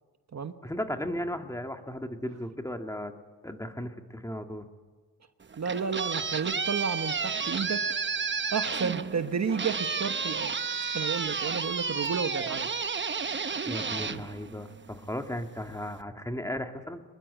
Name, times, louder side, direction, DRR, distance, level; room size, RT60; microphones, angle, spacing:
voice 1, 0.6-3.1 3.4-4.7 13.6-17.0, left 1 dB, 10° left, 5 dB, 1.9 m, -35 dB
sound 1, 5.4-15.1, right 5 dB, 30° right, 0.9 m, -32 dB
voice 2, 5.6-7.8 8.5-10.5 10.9-12.7, right 6 dB, 45° right, 8 dB, 1.3 m, -31 dB
24.5 x 21.5 x 9.4 m, 1.4 s
cardioid pair, 95°, 37 cm